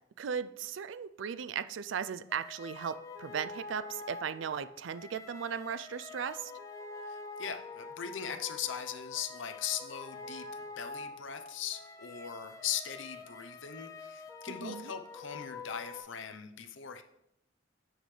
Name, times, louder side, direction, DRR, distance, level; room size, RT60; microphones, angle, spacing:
voice 1, 0.2-6.5 14.6-14.9, right 7 dB, 70° right, 13 dB, 0.4 m, -37 dB
sound 1, 2.3-16.0, left 3 dB, 15° left, 0.6 m, -46 dB
voice 2, 7.1-10.4 10.8-17.0, left 8 dB, 75° left, 8 dB, 0.7 m, -39 dB
9.7 x 6.4 x 3.2 m, 0.81 s
head